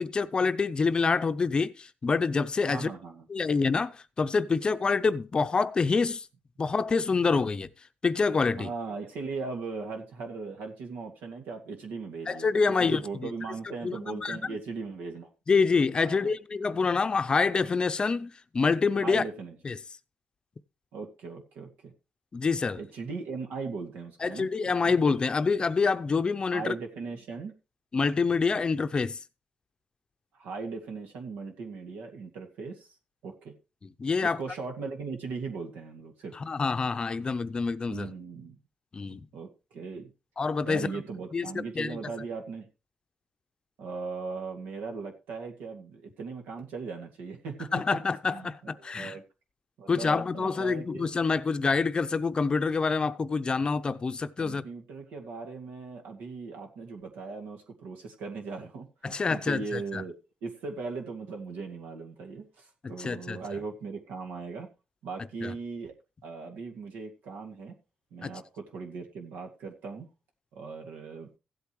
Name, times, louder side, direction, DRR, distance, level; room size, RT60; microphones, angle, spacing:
voice 1, 0.0-2.9 3.3-6.3 6.6-7.7 8.0-8.7 12.3-13.3 13.8-14.5 15.5-19.2 19.6-19.8 22.3-22.8 24.2-26.7 27.9-29.2 34.0-34.4 36.3-38.1 38.9-39.3 40.4-40.9 41.3-42.0 47.7-49.2 49.9-54.6 59.0-60.0 63.0-63.4 65.4-65.5 68.2-68.3, left 4 dB, 30° left, 0.6 m, -27 dB
voice 2, 2.7-3.3 8.6-12.5 12.8-15.3 16.0-16.3 19.0-19.6 20.9-21.9 22.8-24.5 24.8-25.0 26.5-27.5 30.3-32.9 33.2-33.5 34.2-36.3 37.9-38.6 39.3-40.1 40.7-42.7 43.8-47.7 48.3-49.2 49.8-51.1 54.4-60.1 60.4-64.7 65.0-65.9 66.2-67.7 68.1-70.1 70.5-71.3, right 4 dB, 90° right, 2.2 m, -38 dB
15.5 x 8.3 x 3.1 m
cardioid pair, 95°, 3 cm